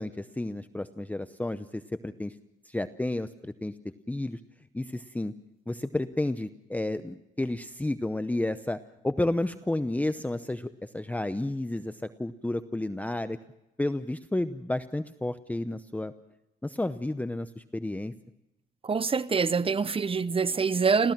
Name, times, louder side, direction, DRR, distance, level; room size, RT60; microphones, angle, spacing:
voice 1, 0.0-2.3 2.7-3.7 4.1-4.4 4.7-5.3 5.7-13.4 13.8-16.1 16.6-18.1, left 1 dB, 10° left, 0.7 m, -31 dB
voice 2, 18.8-21.1, right 5 dB, 25° right, 0.8 m, -25 dB
30.0 x 15.0 x 6.0 m
cardioid pair, 90°, 20 cm